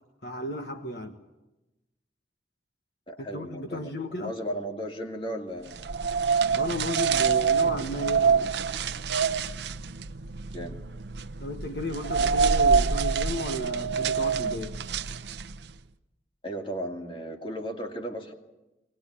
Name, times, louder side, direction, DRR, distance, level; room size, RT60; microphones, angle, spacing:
voice 1, 0.2-1.2 3.2-4.3 6.5-8.5 11.4-14.8, left 1 dB, 60° left, 6 dB, 1.4 m, -34 dB
voice 2, 3.1-5.8 10.5-10.8 16.4-18.3, equal, 30° left, 3 dB, 2.4 m, -35 dB
sound 1, 5.7-15.7, right 5 dB, 70° right, 0.8 m, -26 dB
22.0 x 19.5 x 9.8 m, 1.0 s
head